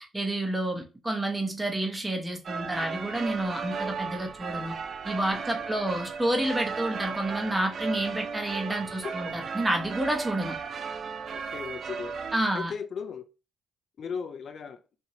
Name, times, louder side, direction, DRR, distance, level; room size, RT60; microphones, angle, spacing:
voice 1, 0.1-4.7 5.0-10.6 12.3-12.7, right 1 dB, 15° right, 0.9 m, -29 dB
sound 1, 2.4-12.4, right 5 dB, 50° right, 0.3 m, -35 dB
voice 2, 2.8-3.3 5.3-5.7 11.3-12.1 12.5-13.2 14.0-14.8, left 6 dB, 55° left, 0.4 m, -38 dB
2.9 x 2.5 x 2.8 m
cardioid pair, 90°, 0 cm